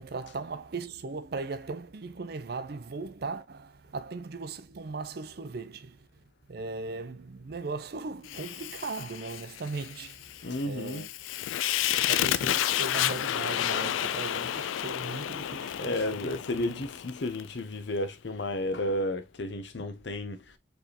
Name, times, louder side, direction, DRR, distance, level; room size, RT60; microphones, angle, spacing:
voice 1, 0.0-6.1 6.5-11.1 12.0-16.8, right 3 dB, 55° right, 0.5 m, -38 dB
Fire, 8.3-17.5, left 11 dB, 85° left, 0.3 m, -31 dB
voice 2, 10.4-11.1 13.7-13.9 14.3-14.5 15.8-20.6, left 1 dB, 65° left, 0.7 m, -32 dB
4.4 x 3.4 x 2.8 m
head